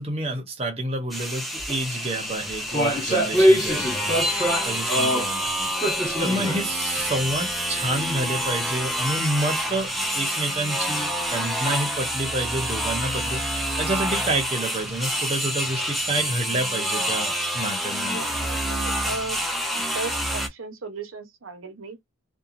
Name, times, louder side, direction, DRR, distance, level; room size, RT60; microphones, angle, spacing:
voice 1, 0.0-4.2 4.6-5.7 6.2-18.2, right 1 dB, 30° right, 0.8 m, -29 dB
sound 1, 1.1-20.5, equal, ahead, 0.4 m, -28 dB
sound 2, 1.6-1.8 2.0-5.4 5.8-6.7 7.0-7.1 7.8-7.9, equal, 20° left, 1.2 m, -23 dB
voice 2, 18.1-19.4 19.7-22.0, right 3 dB, 80° right, 0.8 m, -36 dB
2.8 x 2.2 x 2.5 m
head